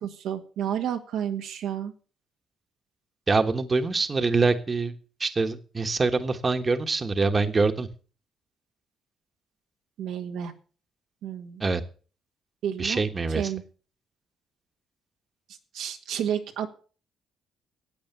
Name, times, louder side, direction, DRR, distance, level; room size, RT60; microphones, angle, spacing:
voice 1, 0.0-1.9 10.0-10.5 11.2-11.6 12.6-13.0 13.4-13.6 15.7-16.7, right 9 dB, 85° right, 4 dB, 1.8 m, -31 dB
voice 2, 3.3-4.9 5.2-7.9 11.6-11.8 12.8-13.5, right 4 dB, 30° right, 8 dB, 1.4 m, -24 dB
13.5 x 8.6 x 6.9 m, 0.40 s
cardioid pair, 85°, 0 cm